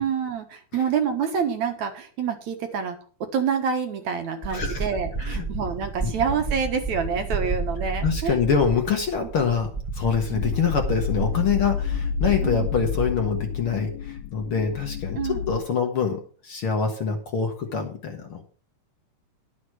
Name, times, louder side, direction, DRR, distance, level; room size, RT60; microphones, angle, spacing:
voice 1, 0.0-8.4 10.3-10.4 12.4-12.7 15.1-15.5, right 6 dB, 70° right, 6 dB, 2.6 m, -27 dB
sound 1, 4.4-13.1, right 3 dB, 30° right, 0.7 m, -31 dB
voice 2, 4.5-4.8 5.2-5.5 6.0-6.1 8.0-15.2 15.5-18.4, left 6 dB, 50° left, 3 dB, 1.9 m, -25 dB
sound 2, 10.4-15.6, left 8 dB, 85° left, 2.7 m, -30 dB
11.5 x 6.6 x 6.1 m, 0.42 s
omnidirectional pair, 3.5 m